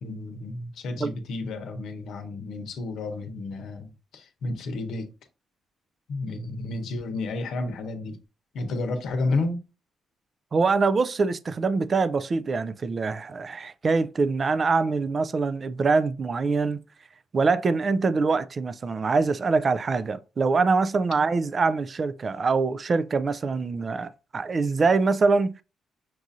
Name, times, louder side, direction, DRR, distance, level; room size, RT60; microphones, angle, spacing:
voice 1, 0.0-5.1 6.1-8.2 8.5-9.6 21.1-21.2, left 2 dB, 75° left, 0.8 m, -31 dB
voice 2, 10.5-16.8 17.3-25.6, right 4 dB, 40° right, 0.3 m, -24 dB
6.0 x 2.5 x 2.7 m
cardioid pair, 90°, 0 cm